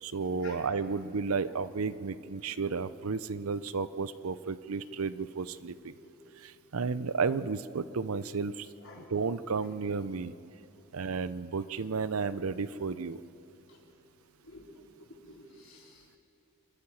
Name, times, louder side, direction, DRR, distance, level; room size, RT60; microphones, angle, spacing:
voice 1, 0.0-6.0 6.4-8.7 9.0-10.3 10.9-13.2, right 4 dB, 80° right, 15 dB, 0.6 m, -33 dB
voice 2, 15.0-16.2, left 2 dB, 65° left, -3 dB, 4.4 m, -52 dB
27.5 x 12.5 x 7.5 m, 2.8 s
head